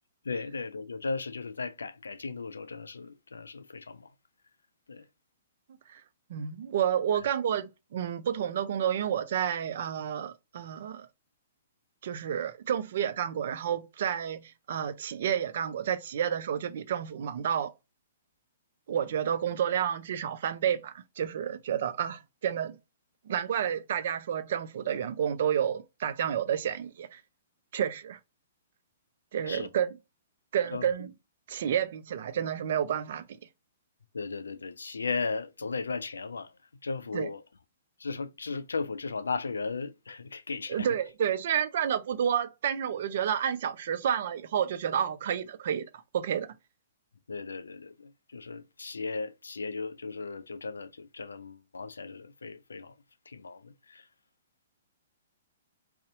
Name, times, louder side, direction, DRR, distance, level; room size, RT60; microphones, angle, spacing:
voice 1, 0.2-4.1 4.9-5.1 29.5-29.7 30.7-30.9 34.1-36.5 36.8-37.4 38.0-40.9 47.3-52.9 53.3-54.0, left 4 dB, 80° left, 0.3 m, -36 dB
voice 2, 6.3-11.1 12.0-17.7 18.9-22.8 23.3-27.2 27.7-28.2 29.3-30.0 30.5-31.1 31.5-33.3 37.1-37.3 40.7-46.5, right 9 dB, 55° right, 0.4 m, -30 dB
2.6 x 2.0 x 2.6 m
figure-of-eight pair, 120°, 0 cm